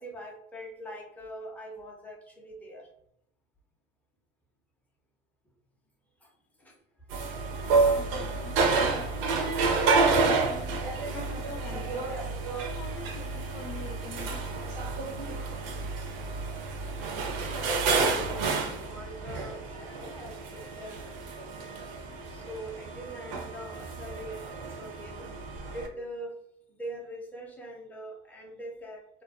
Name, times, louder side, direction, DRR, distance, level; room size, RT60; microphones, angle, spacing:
voice 1, 0.0-2.9 6.2-6.3 6.6-6.8 17.4-21.9 22.3-25.3 25.7-26.4 26.7-29.2, equal, 5° left, -1 dB, 0.4 m, -43 dB
sound 1, 7.1-25.9, right 4 dB, 65° right, 0.6 m, -30 dB
voice 2, 7.6-10.8 11.1-12.2 12.6-14.8, left 4 dB, 80° left, 4 dB, 0.6 m, -44 dB
2.5 x 2.2 x 2.4 m, 0.75 s
supercardioid pair, 120°, 31 cm